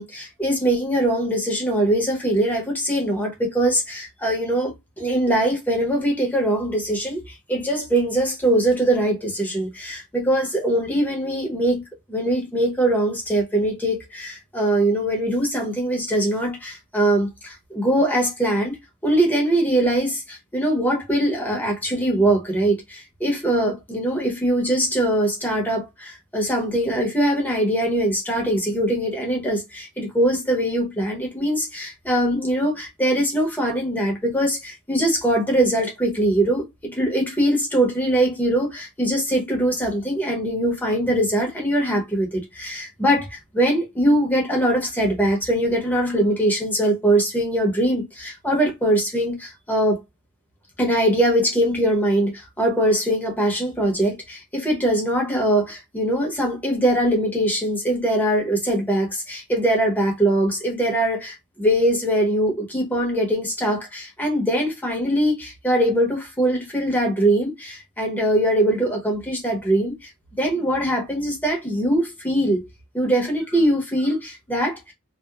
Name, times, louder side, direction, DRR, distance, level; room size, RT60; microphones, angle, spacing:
voice 1, 0.0-11.8 12.1-18.8 19.0-50.0 50.8-70.1 70.4-72.6 72.9-74.9, right 1 dB, 10° left, 0.8 m, -22 dB
2.8 x 2.1 x 2.3 m
head